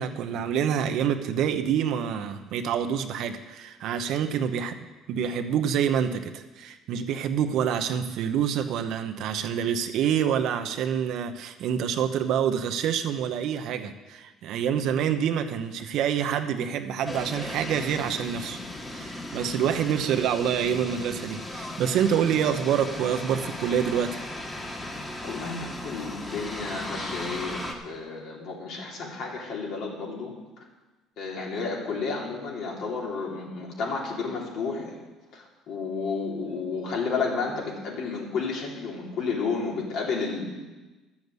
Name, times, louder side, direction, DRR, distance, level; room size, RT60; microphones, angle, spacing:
voice 1, 0.0-4.8 5.1-18.6 18.9-24.2, right 8 dB, 65° right, 7 dB, 0.9 m, -27 dB
sound 1, 17.1-27.7, left 1 dB, 15° left, 1.8 m, -36 dB
voice 2, 25.2-30.6 31.2-35.0 35.3-40.5, left 4 dB, 65° left, -3 dB, 3.8 m, -31 dB
12.0 x 7.2 x 8.1 m, 1.2 s
cardioid pair, 100°, 0 cm